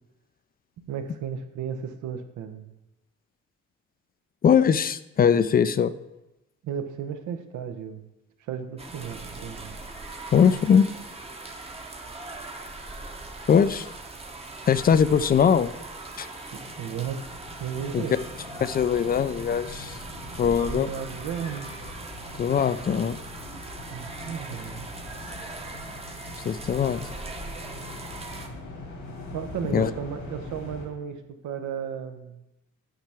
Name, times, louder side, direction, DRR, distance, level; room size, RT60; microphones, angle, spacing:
voice 1, 0.9-2.7 6.6-8.0 8.4-9.8 16.5-17.2 17.6-18.2 20.6-21.7 23.9-25.2 29.3-32.4, right 8 dB, 75° right, 7 dB, 0.8 m, -34 dB
voice 2, 4.4-5.9 10.3-10.9 13.5-13.9 14.7-15.7 16.2-16.3 17.9-18.0 18.6-19.9 20.4-20.9 22.4-23.2 26.5-27.0 29.7-29.9, left 7 dB, 30° left, 14 dB, 0.4 m, -21 dB
sound 1, 8.8-28.5, right 2 dB, 20° right, 0.9 m, -40 dB
sound 2, 15.9-30.9, left 2 dB, 85° left, 2.1 m, -43 dB
9.1 x 5.5 x 3.4 m, 0.96 s
cardioid pair, 90°, 30 cm